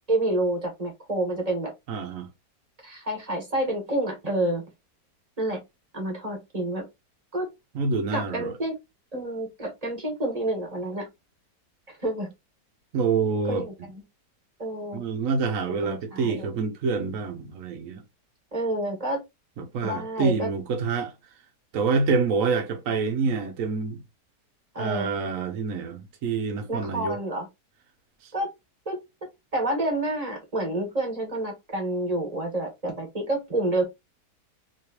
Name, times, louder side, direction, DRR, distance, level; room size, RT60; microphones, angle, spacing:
voice 1, 0.1-1.7 2.8-4.6 5.4-5.6 5.9-6.8 7.3-7.5 8.1-8.7 9.1-11.1 11.9-12.3 13.5-14.0 14.6-15.0 15.7-16.5 18.5-19.2 19.8-20.5 24.7-25.1 26.7-27.5 28.3-28.5 28.8-29.0 29.5-33.8, right 1 dB, 25° right, 1.5 m, -28 dB
voice 2, 1.9-2.3 7.7-8.5 12.9-13.6 14.9-18.0 19.6-21.1 21.7-24.0 24.8-27.2 28.2-28.3, right 4 dB, 60° right, 0.9 m, -27 dB
3.2 x 2.9 x 2.8 m
omnidirectional pair, 1.8 m